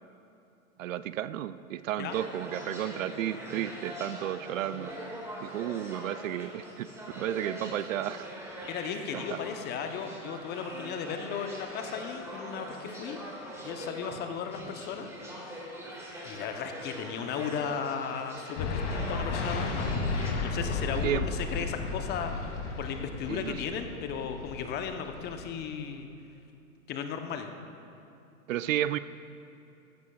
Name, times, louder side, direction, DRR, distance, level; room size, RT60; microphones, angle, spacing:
voice 1, 0.8-4.9 5.4-6.9 7.2-8.3 9.1-9.4 21.0-21.3 23.3-23.8 28.5-29.0, right 11 dB, 65° right, 15 dB, 0.5 m, -33 dB
sound 1, 2.1-20.3, equal, 5° right, 1.9 m, -42 dB
voice 2, 8.7-13.2 13.6-15.1 15.9-20.0 20.4-26.1 26.9-27.5, left 7 dB, 25° left, 6 dB, 0.7 m, -36 dB
sound 2, 18.6-25.5, left 4 dB, 55° left, 2.1 m, -33 dB
15.5 x 14.5 x 2.3 m, 2.7 s
hypercardioid pair, 115°, 42 cm